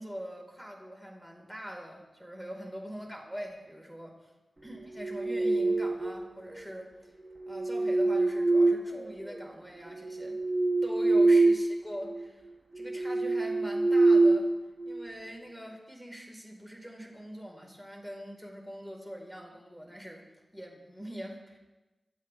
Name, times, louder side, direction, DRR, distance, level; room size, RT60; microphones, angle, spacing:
voice 1, 0.0-4.3 4.6-7.1 7.5-10.4 10.8-12.4 12.7-14.5 14.8-20.2 20.5-21.6, equal, ahead, 0 dB, 5.0 m, -43 dB
sound 1, 4.8-6.3 7.3-9.4 9.9-11.7 12.0-12.2 12.7-15.1, right 2 dB, 20° right, 1.5 m, -25 dB
28.5 x 12.0 x 3.6 m, 1.1 s
cardioid pair, 55°, 0 cm